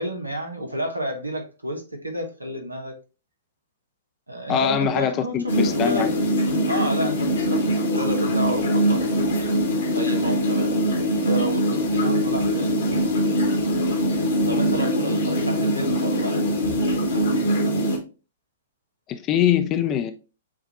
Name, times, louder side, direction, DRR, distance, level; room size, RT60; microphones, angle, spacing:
voice 1, 0.0-3.0 4.3-6.2 6.7-9.3 9.9-11.0 11.2-13.3 14.5-17.5, right 1 dB, 85° right, 1.1 m, -31 dB
voice 2, 4.5-6.1 19.1-20.1, left 9 dB, 30° left, 0.6 m, -23 dB
sound 1, 5.5-18.0, equal, 65° left, 1.4 m, -22 dB
7.4 x 2.5 x 2.9 m
figure-of-eight pair, 110°, 0 cm